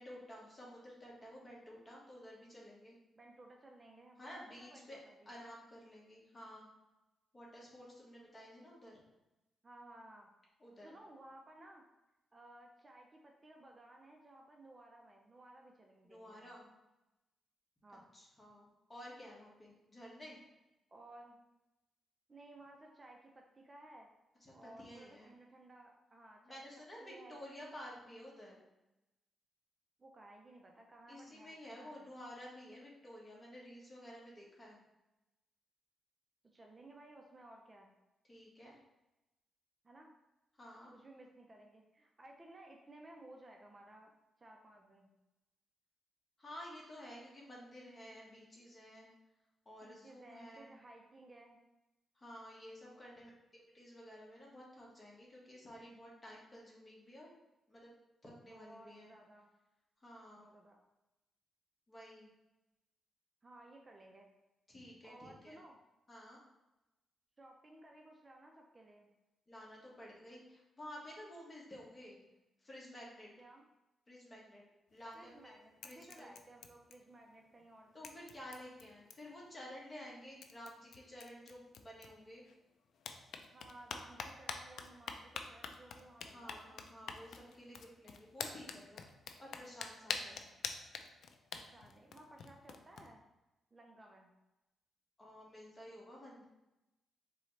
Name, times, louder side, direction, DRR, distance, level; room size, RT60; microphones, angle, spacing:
voice 1, 0.0-3.0 4.2-5.0 5.2-6.7 7.3-9.0 10.6-11.0 16.0-16.7 18.1-20.4 24.4-25.3 26.4-28.6 31.1-34.8 38.3-38.8 40.6-40.9 46.4-49.1 49.6-50.7 52.1-57.3 57.7-57.9 58.2-59.1 60.0-60.4 61.9-62.3 64.7-65.6 66.1-66.4 69.5-72.2 72.6-73.3 74.1-74.6 74.9-75.5 75.8-76.3 77.9-82.4 86.3-89.1 89.4-90.4 95.2-96.4, equal, 25° left, -4 dB, 1.6 m, -52 dB
voice 2, 3.2-5.3 9.6-10.3 10.8-11.8 12.3-16.4 17.8-18.0 20.9-21.4 22.3-24.1 24.5-26.6 27.0-27.4 30.0-32.1 36.5-37.9 39.8-40.1 40.9-44.1 44.4-45.1 49.8-51.6 58.4-59.5 60.4-60.8 63.4-64.3 65.0-65.8 67.4-69.1 73.4-73.6 75.1-78.1 83.5-86.8 90.0-90.5 91.5-93.2 93.7-94.3, right 1 dB, 30° right, 1 dB, 0.5 m, -57 dB
sound 1, 74.9-75.5 75.8-77.3 77.6-77.7 78.0-79.4 80.1-80.2 80.4-82.6 82.9-93.1, left 5 dB, 70° left, 0.4 m, -47 dB
4.0 x 3.8 x 3.2 m, 0.97 s
cardioid pair, 90°, 0 cm